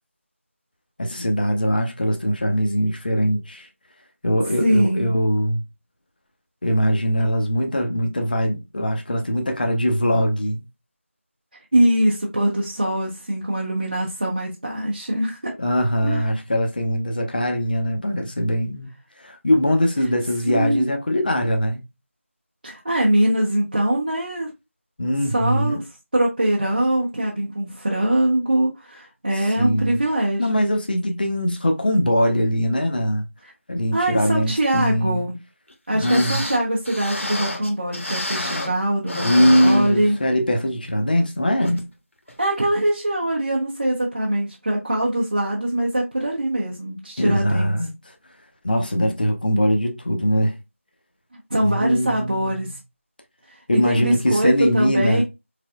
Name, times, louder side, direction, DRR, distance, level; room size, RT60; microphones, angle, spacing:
voice 1, 1.0-3.7 4.2-5.6 6.6-10.6 15.6-18.9 19.2-21.8 25.0-25.8 29.3-30.0 30.4-33.2 33.7-35.3 35.9-36.4 39.2-41.9 47.2-47.9 48.6-50.5 51.6-52.7 53.7-55.2, equal, 40° left, 0.6 m, -21 dB
voice 2, 4.6-5.1 11.7-15.5 16.0-16.3 20.5-20.9 22.6-24.5 25.3-25.8 26.1-30.5 33.9-35.4 35.9-40.2 42.4-47.7 51.5-52.8 53.5-55.2, right 1 dB, 35° right, 0.6 m, -22 dB
sound 1, 35.7-35.8 36.0-38.8 39.1-40.4 40.8-40.9 41.6-41.8 42.3-42.4, left 1 dB, 60° left, 1.0 m, -30 dB
3.8 x 3.3 x 2.3 m
figure-of-eight pair, 170°, 8 cm